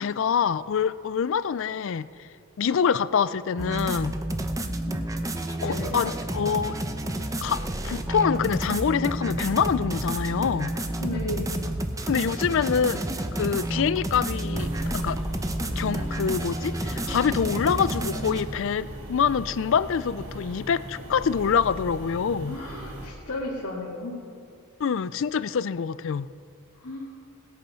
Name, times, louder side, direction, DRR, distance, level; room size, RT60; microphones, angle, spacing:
voice 1, 0.0-2.3 2.6-4.1 5.6-6.8 7.4-10.8 12.1-13.1 13.3-15.2 15.8-22.6 24.8-26.3, left 6 dB, 60° left, 17 dB, 0.4 m, -25 dB
sound 1, 3.6-18.4, right 1 dB, 15° right, 0.7 m, -30 dB
voice 2, 5.6-6.0 11.0-11.6 22.5-24.1 26.8-27.1, left 2 dB, 80° left, -8 dB, 2.3 m, -34 dB
sound 2, 14.5-23.1, right 1 dB, 60° right, 2.3 m, -38 dB
19.5 x 8.6 x 5.6 m, 2.5 s
head